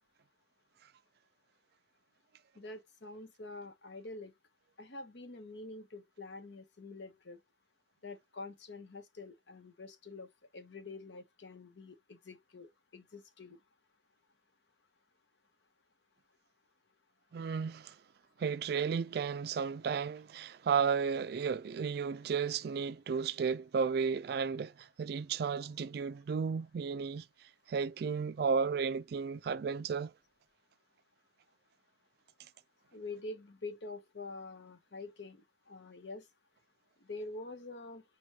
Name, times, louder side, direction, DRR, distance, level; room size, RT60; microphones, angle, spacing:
voice 1, 2.5-4.3 4.8-7.4 8.0-13.6 32.9-36.2 37.0-38.0, left 3 dB, 75° left, 0.9 m, -46 dB
voice 2, 17.3-17.9 18.4-27.3 27.7-30.1, right 6 dB, 60° right, 0.3 m, -33 dB
6.2 x 2.3 x 2.8 m
head